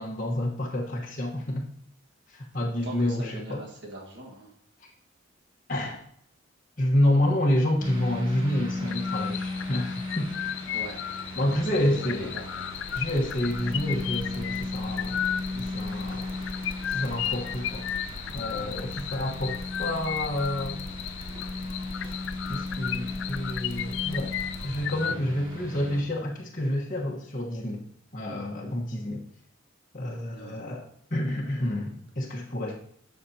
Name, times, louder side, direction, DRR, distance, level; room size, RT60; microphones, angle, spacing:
voice 1, 0.0-1.6 2.3-3.6 5.7-6.0 6.8-10.3 11.4-12.3 12.9-15.2 15.5-16.3 16.9-17.9 18.3-20.8 22.5-24.3 24.6-27.8 28.1-29.2 29.9-30.8 31.1-32.7, left 1 dB, 40° left, -3 dB, 1.3 m, -28 dB
voice 2, 2.8-4.5 10.7-11.0 11.5-12.7 30.3-30.6 32.3-32.4, right 1 dB, 55° right, -2 dB, 1.6 m, -42 dB
sound 1, 7.8-26.0, left 2 dB, 30° right, 4.0 m, -36 dB
sound 2, 8.9-25.2, left 11 dB, 60° left, 0.3 m, -35 dB
sound 3, 12.7-24.8, left 1 dB, 85° left, 1.2 m, -41 dB
13.5 x 5.8 x 2.8 m, 0.67 s
head